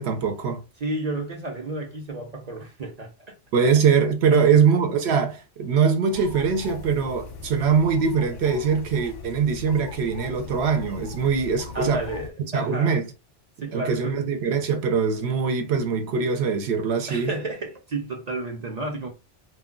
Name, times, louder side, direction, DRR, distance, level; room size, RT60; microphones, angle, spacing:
voice 1, 0.0-0.6 3.5-12.0 12.5-13.0 13.7-17.3, right 6 dB, 70° right, 0.8 m, -22 dB
voice 2, 0.8-3.3 4.3-4.6 11.7-13.0 13.6-14.3 17.1-19.1, right 2 dB, 45° right, 0.5 m, -31 dB
sound 1, 6.1-12.3, left 4 dB, 55° left, 0.6 m, -40 dB
2.2 x 2.2 x 3.6 m
omnidirectional pair, 1.2 m